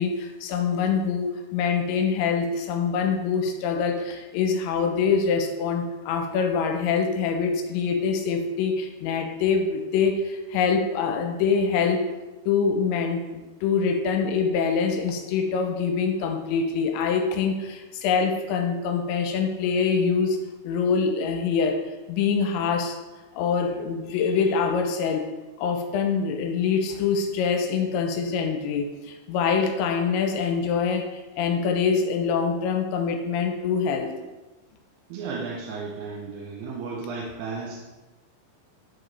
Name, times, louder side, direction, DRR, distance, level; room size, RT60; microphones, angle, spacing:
voice 1, 0.0-12.1 12.5-20.4 20.6-21.8 22.1-23.0 23.4-25.3 25.6-34.1, left 5 dB, 80° left, 4 dB, 3.0 m, -25 dB
voice 2, 35.1-37.8, right 4 dB, 80° right, -4 dB, 3.1 m, -34 dB
10.5 x 4.7 x 3.3 m, 1.1 s
omnidirectional pair, 5.3 m